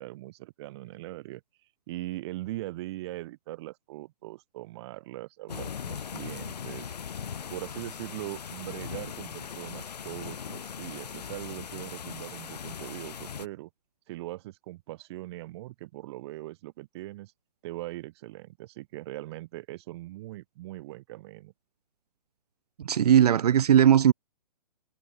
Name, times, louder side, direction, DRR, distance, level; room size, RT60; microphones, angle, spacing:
voice 1, 0.0-1.4 1.9-6.9 7.5-13.7 14.1-17.3 17.6-21.5, right 17 dB, 40° right, 5.6 m, -40 dB
sound 1, 5.5-13.5, left 7 dB, 70° left, 3.1 m, -39 dB
voice 2, 22.8-24.1, right 9 dB, 65° right, 0.7 m, -19 dB
hypercardioid pair, 145°, 21 cm